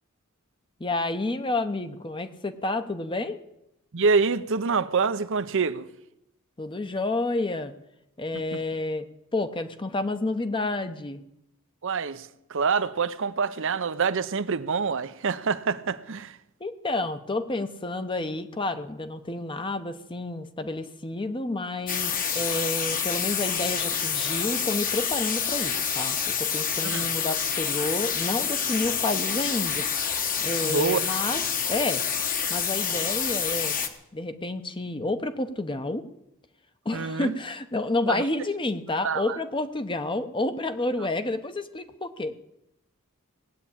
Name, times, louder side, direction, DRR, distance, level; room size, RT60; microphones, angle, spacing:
voice 1, 0.8-3.4 6.6-7.7 8.2-9.1 9.3-11.2 16.6-29.9 30.4-31.4 31.7-32.0 32.5-33.8 34.1-36.1 36.8-42.4, left 2 dB, 25° left, 0.9 m, -30 dB
voice 2, 3.9-5.9 8.3-8.6 11.8-16.4 26.8-27.1 30.6-31.1 36.9-37.4 38.1-38.2 39.0-39.4, right 5 dB, 60° right, 0.7 m, -26 dB
sound 1, 21.9-33.9, left 7 dB, 40° left, 1.3 m, -27 dB
18.5 x 8.5 x 8.5 m
head